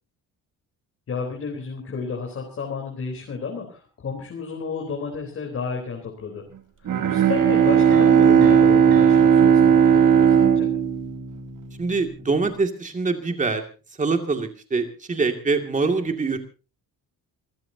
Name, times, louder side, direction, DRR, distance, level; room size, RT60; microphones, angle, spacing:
voice 1, 1.1-6.4 6.8-10.7, left 5 dB, 40° left, 0 dB, 4.0 m, -32 dB
Bowed string instrument, 6.9-11.8, right 8 dB, 55° right, 2.4 m, -16 dB
Piano, 7.9-10.8, right 7 dB, 85° right, 7.5 m, -38 dB
voice 2, 11.8-13.6 14.0-16.4, right 4 dB, 20° right, 5 dB, 2.4 m, -24 dB
27.5 x 15.0 x 2.8 m, 0.33 s
cardioid pair, 155°, 36 cm